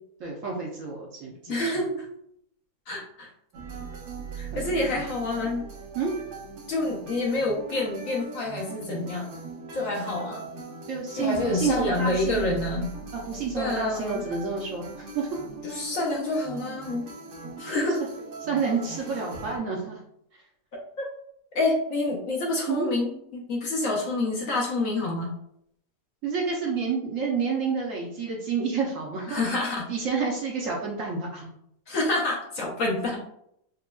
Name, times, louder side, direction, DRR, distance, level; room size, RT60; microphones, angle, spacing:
voice 1, 0.2-1.7 4.5-4.6 5.9-6.1 10.9-12.5 13.1-14.8 15.1-15.3 18.4-20.0 22.7-22.9 26.2-29.4 29.9-31.5, right 5 dB, 65° right, -2 dB, 0.9 m, -29 dB
voice 2, 1.5-2.0 2.9-3.3 4.3-5.6 6.7-9.3 9.7-10.4 11.1-12.9 13.5-14.2 15.6-17.1 17.6-18.0 21.0-21.1 21.5-25.3 29.3-29.9 31.9-33.2, left 2 dB, 65° left, -1 dB, 1.0 m, -27 dB
sound 1, 3.5-19.6, right 4 dB, 85° right, 1.6 m, -40 dB
4.9 x 2.2 x 2.3 m, 0.72 s
omnidirectional pair, 1.8 m